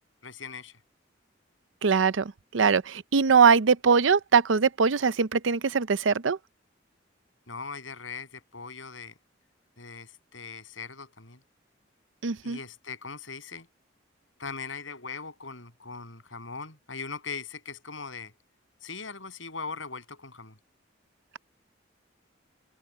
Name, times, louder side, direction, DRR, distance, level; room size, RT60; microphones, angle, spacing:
voice 1, 0.2-0.8 7.5-9.1 9.8-11.4 12.4-13.7 14.4-18.3 18.8-20.6, left 4 dB, 85° left, 7.9 m, -40 dB
voice 2, 1.8-6.4 12.2-12.6, right 5 dB, 80° right, 0.6 m, -22 dB
open air
head